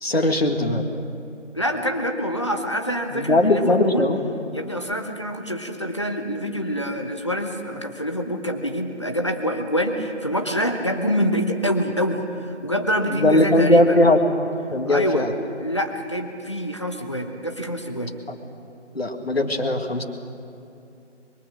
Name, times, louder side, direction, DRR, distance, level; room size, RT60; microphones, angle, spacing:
voice 1, 0.0-0.8 3.1-4.2 13.1-14.2 14.7-15.3 18.3-18.4 18.9-20.0, left 1 dB, 55° left, 4 dB, 2.0 m, -19 dB
voice 2, 1.5-4.1 4.5-14.0 14.9-15.3 15.6-18.1, equal, 25° left, 4 dB, 1.1 m, -26 dB
23.0 x 22.5 x 6.4 m, 2.7 s
figure-of-eight pair, 165°, 36 cm